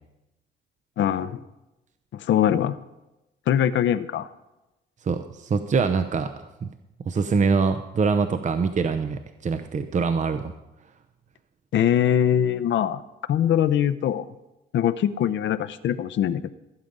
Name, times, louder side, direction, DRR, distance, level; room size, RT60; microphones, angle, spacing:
voice 1, 1.0-1.4 2.1-2.8 3.5-4.3 11.7-13.0 13.3-14.2 14.7-16.5, left 10 dB, 70° left, 14 dB, 0.7 m, -22 dB
voice 2, 5.0-6.7 7.1-10.5, right 5 dB, 40° right, 8 dB, 0.7 m, -24 dB
15.0 x 7.6 x 5.3 m, 0.98 s
cardioid pair, 90°, 20 cm